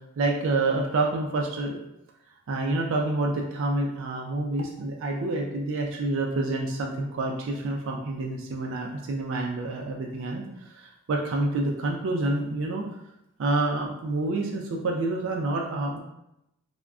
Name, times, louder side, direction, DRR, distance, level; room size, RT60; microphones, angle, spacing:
voice 1, 0.2-1.8 2.5-12.8 13.4-16.0, right 2 dB, 65° right, 0 dB, 0.3 m, -28 dB
3.5 x 2.1 x 2.3 m, 0.85 s
head